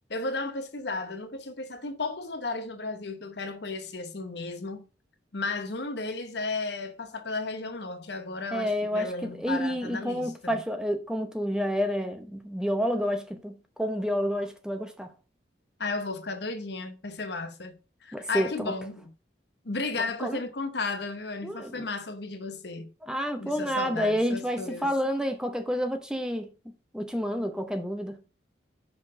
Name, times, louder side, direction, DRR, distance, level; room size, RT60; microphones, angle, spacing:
voice 1, 0.1-4.8 5.3-10.6 15.8-19.1 19.6-22.9 23.4-24.9, left 3 dB, 60° left, 0.9 m, -34 dB
voice 2, 8.5-15.1 18.1-18.7 20.2-20.4 21.4-21.9 23.0-26.5 26.9-28.2, equal, 5° right, 0.8 m, -29 dB
6.0 x 4.4 x 6.2 m
head